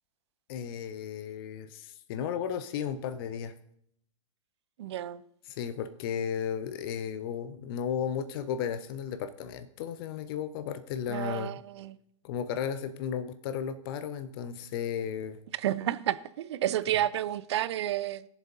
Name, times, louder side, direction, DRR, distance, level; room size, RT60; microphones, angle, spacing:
voice 1, 0.5-3.5 5.5-11.6 12.2-15.4, left 8 dB, 45° left, 0.7 m, -34 dB
voice 2, 4.8-5.2 11.1-12.0 15.6-18.3, right 12 dB, 55° right, 0.5 m, -31 dB
20.5 x 7.3 x 2.7 m
figure-of-eight pair, 105°, 17 cm